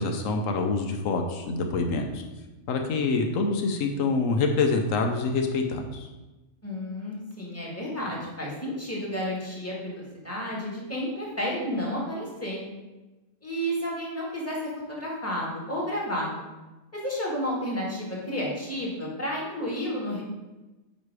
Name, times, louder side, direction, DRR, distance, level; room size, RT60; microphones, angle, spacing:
voice 1, 0.0-2.2 2.7-6.1, left 3 dB, 85° left, 4 dB, 1.1 m, -26 dB
voice 2, 6.6-12.6 13.4-14.6 14.9-16.4 16.9-20.2, equal, 10° left, -5 dB, 1.7 m, -31 dB
9.2 x 3.1 x 4.8 m, 1.1 s
omnidirectional pair, 1.3 m